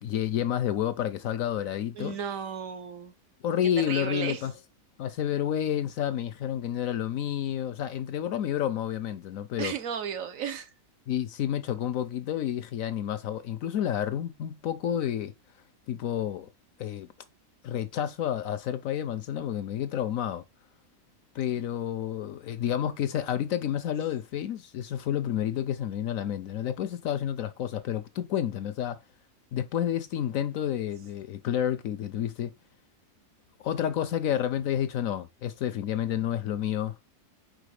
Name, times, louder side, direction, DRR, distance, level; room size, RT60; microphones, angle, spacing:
voice 1, 0.0-2.2 3.4-4.5 5.0-9.7 11.1-15.3 15.9-16.5 16.8-17.1 17.6-20.4 21.3-29.0 29.5-32.5 33.6-36.9, left 10 dB, 70° left, 0.9 m, -30 dB
voice 2, 1.9-3.1 3.9-4.4 9.6-10.7, right 7 dB, 60° right, 1.2 m, -34 dB
5.1 x 4.5 x 4.8 m
omnidirectional pair, 1.7 m